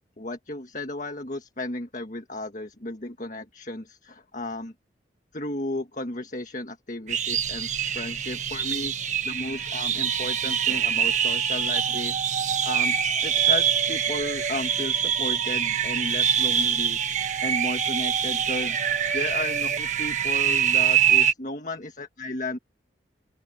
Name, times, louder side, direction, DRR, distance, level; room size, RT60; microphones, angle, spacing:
voice 1, 0.2-4.7 5.3-7.7 7.9-13.0 13.2-22.6, left 2 dB, 45° left, 1.7 m, -34 dB
sound 1, 7.1-21.3, right 8 dB, 40° right, 1.4 m, -24 dB
open air
head